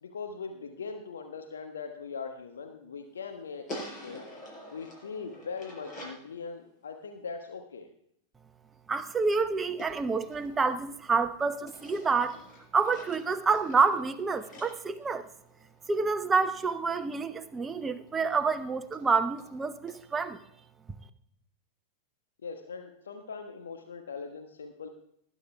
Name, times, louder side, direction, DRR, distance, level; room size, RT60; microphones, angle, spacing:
voice 1, 0.0-4.3 4.7-7.9 22.4-24.9, left 5 dB, 70° left, 5 dB, 1.3 m, -41 dB
sound 1, 3.7-6.3 9.8-11.2 11.7-15.8 17.7-17.8 18.1-18.2 18.5-18.6 18.9-19.0 19.4-19.5 19.9-20.0, left 1 dB, 30° left, 5.6 m, -46 dB
voice 2, 8.9-12.4 12.7-15.2 15.9-20.4, right 4 dB, 15° right, 11 dB, 0.9 m, -28 dB
19.5 x 9.8 x 3.4 m, 0.70 s
figure-of-eight pair, 90°, 0 cm